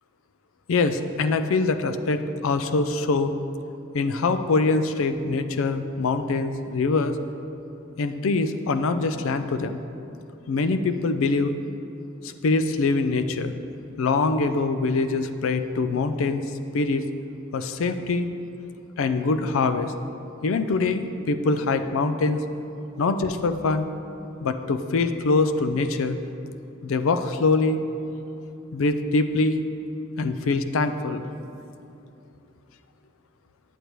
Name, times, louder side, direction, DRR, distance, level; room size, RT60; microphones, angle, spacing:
voice 1, 0.7-3.3 3.9-7.2 8.0-9.8 10.5-11.5 12.2-13.5 14.0-16.4 16.7-17.0 17.5-18.3 19.0-19.9 20.4-22.4 23.0-23.9 24.4-26.2 26.8-27.8 28.7-29.6 30.2-31.3, left 3 dB, 75° left, 10 dB, 0.4 m, -24 dB
8.1 x 8.0 x 3.0 m, 2.7 s
head